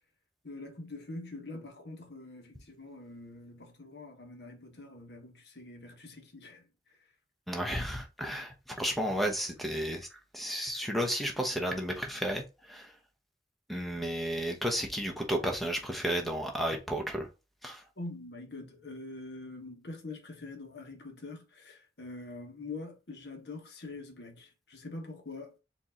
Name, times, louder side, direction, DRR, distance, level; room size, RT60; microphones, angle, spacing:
voice 1, 0.4-6.6 18.0-25.6, left 2 dB, 70° left, 1.2 m, -44 dB
voice 2, 7.5-10.1 10.3-12.9 13.7-17.3 17.6-17.8, equal, ahead, 0.9 m, -32 dB
4.6 x 2.8 x 3.6 m
head